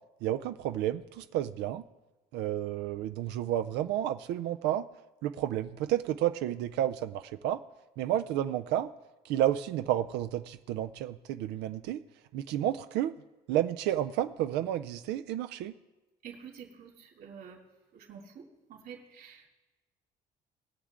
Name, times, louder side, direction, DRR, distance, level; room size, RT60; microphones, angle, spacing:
voice 1, 0.2-1.8 2.3-4.9 5.2-7.6 8.0-8.9 9.3-12.0 12.3-13.1 13.5-15.7, right 12 dB, 85° right, 9 dB, 0.4 m, -31 dB
voice 2, 16.2-17.6 17.9-18.4 18.7-19.5, right 7 dB, 65° right, -2 dB, 2.9 m, -48 dB
21.0 x 7.3 x 3.7 m, 1.1 s
cardioid pair, 110°, 17 cm